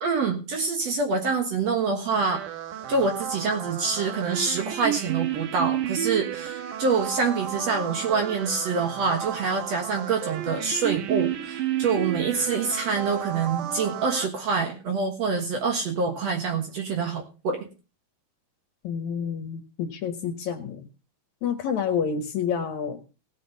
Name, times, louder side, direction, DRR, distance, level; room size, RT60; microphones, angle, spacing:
voice 1, 0.0-2.4 2.9-17.7, right 4 dB, 55° right, 4 dB, 2.3 m, -26 dB
sound 1, 2.3-14.3, right 12 dB, 70° right, 2.4 m, -32 dB
voice 2, 18.8-20.9 21.4-23.0, left 7 dB, 65° left, 8 dB, 2.2 m, -29 dB
17.5 x 6.6 x 5.4 m, 0.34 s
omnidirectional pair, 4.1 m